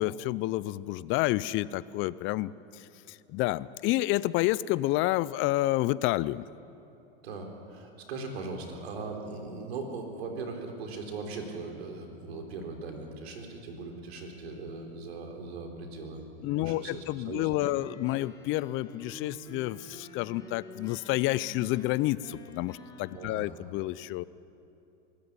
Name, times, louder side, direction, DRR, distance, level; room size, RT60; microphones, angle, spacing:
voice 1, 0.0-2.5 3.3-6.4 16.4-24.2, left 17 dB, 40° left, 19 dB, 0.5 m, -29 dB
voice 2, 7.2-17.7 23.1-23.5, right 3 dB, 80° right, 3 dB, 4.0 m, -39 dB
sound 1, 17.6-23.1, left 1 dB, 10° left, 3.8 m, -49 dB
24.0 x 13.5 x 9.8 m, 2.8 s
hypercardioid pair, 110°, 31 cm